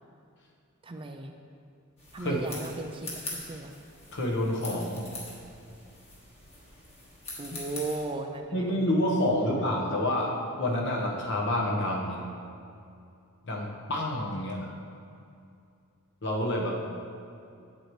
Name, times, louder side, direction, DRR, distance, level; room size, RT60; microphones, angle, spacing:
voice 1, 0.8-1.3 2.1-3.2 3.5-3.7 7.4-8.5, right 3 dB, 25° right, 5 dB, 0.3 m, -36 dB
sound 1, 2.0-8.1, left 2 dB, 30° left, 1.4 m, -43 dB
voice 2, 4.1-5.1 8.5-12.2 13.4-14.7 16.2-16.8, left 1 dB, 55° left, -1 dB, 1.1 m, -28 dB
7.8 x 7.8 x 3.1 m, 2.5 s
head